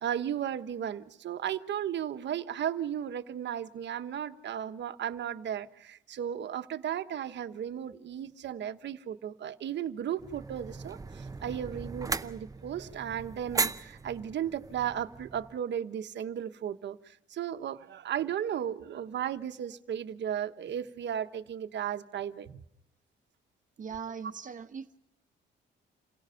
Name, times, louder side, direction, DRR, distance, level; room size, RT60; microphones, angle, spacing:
voice 1, 0.0-22.6, right 9 dB, 60° right, 1.2 m, -35 dB
sound 1, 10.2-15.6, right 3 dB, 15° right, 0.8 m, -37 dB
voice 2, 23.8-25.0, right 6 dB, 40° right, 1.3 m, -40 dB
28.5 x 17.0 x 5.7 m
cardioid pair, 90°, 20 cm